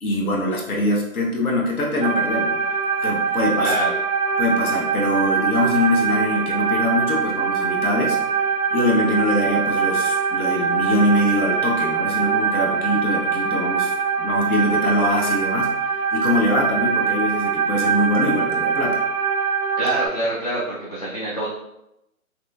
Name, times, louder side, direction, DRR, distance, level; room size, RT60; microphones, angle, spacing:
voice 1, 0.0-3.7 4.4-8.2 8.7-15.8 16.1-19.0, left 1 dB, 85° left, -2 dB, 1.0 m, -23 dB
sound 1, 2.0-20.1, right 6 dB, 55° right, 0.8 m, -23 dB
voice 2, 3.6-3.9 19.8-21.5, right 1 dB, 30° left, -8 dB, 0.4 m, -25 dB
3.9 x 2.9 x 2.3 m, 0.85 s
hypercardioid pair, 150°, 43 cm